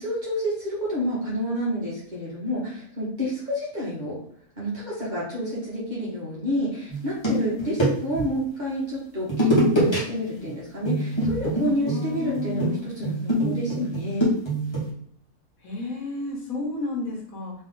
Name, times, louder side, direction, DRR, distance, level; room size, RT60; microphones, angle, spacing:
voice 1, 0.0-4.2 4.6-14.2, equal, 30° right, -7 dB, 1.6 m, -29 dB
sound 1, 6.9-8.3 9.3-10.0 10.3-10.5 10.9-14.9, right 1 dB, 20° left, 1.3 m, -24 dB
voice 2, 7.3-7.7 11.6-12.9 13.4-13.9 15.6-17.5, left 2 dB, 65° left, -1 dB, 1.5 m, -32 dB
3.5 x 3.2 x 3.8 m, 0.65 s
omnidirectional pair, 1.6 m